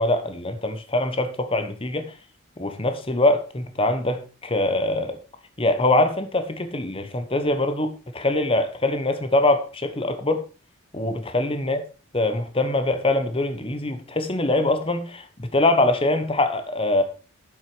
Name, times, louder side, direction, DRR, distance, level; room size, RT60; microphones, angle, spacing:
voice 1, 0.0-2.1 2.6-5.2 5.6-10.4 10.9-11.8 12.1-17.0, left 2 dB, 25° left, 8 dB, 1.2 m, -23 dB
9.4 x 7.5 x 5.0 m, 0.35 s
head